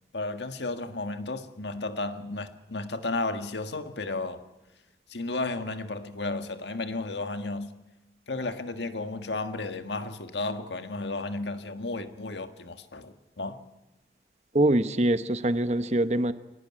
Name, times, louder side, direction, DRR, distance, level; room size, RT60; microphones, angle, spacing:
voice 1, 0.1-4.4 5.1-7.7 8.3-13.6, left 2 dB, 80° left, 8 dB, 1.6 m, -33 dB
voice 2, 14.5-16.3, right 1 dB, 40° right, 11 dB, 1.0 m, -24 dB
22.5 x 18.5 x 9.9 m, 1.0 s
head